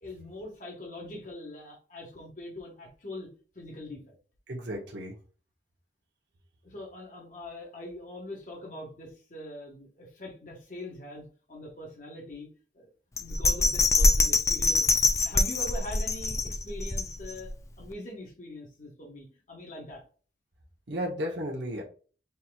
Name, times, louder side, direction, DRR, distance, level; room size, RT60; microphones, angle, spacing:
voice 1, 0.0-3.3 3.5-4.2 6.6-12.5 12.7-12.9 13.2-17.5 17.8-20.0, left 1 dB, 40° left, -1 dB, 1.2 m, -42 dB
voice 2, 4.5-5.2 20.9-21.8, equal, 65° right, 0 dB, 0.8 m, -34 dB
Bell, 13.2-17.5 17.9-18.0, left 3 dB, 15° left, 0.3 m, -24 dB
5.5 x 2.9 x 2.3 m, 0.38 s
head